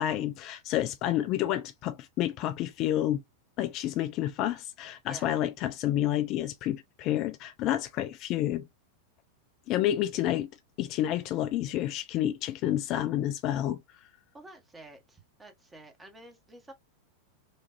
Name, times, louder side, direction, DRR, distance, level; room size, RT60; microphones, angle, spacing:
voice 1, 0.0-3.2 3.6-8.6 9.7-10.5 10.8-13.8, left 12 dB, 40° left, 0.4 m, -29 dB
voice 2, 5.0-5.4 14.3-16.7, right 2 dB, 15° right, 1.2 m, -50 dB
5.3 x 2.6 x 2.5 m
figure-of-eight pair, 90°, 0 cm